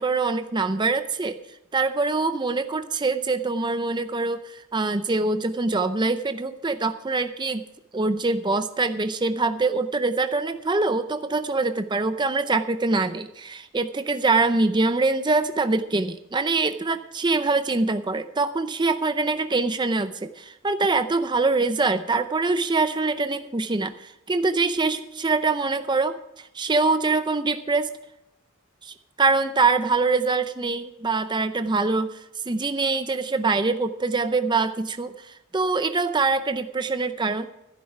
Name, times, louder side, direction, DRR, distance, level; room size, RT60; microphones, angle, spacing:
voice 1, 0.0-1.4 1.7-7.6 7.9-27.9 28.8-37.5, right 3 dB, 20° right, 10 dB, 0.6 m, -24 dB
13.0 x 11.5 x 4.8 m, 0.85 s
head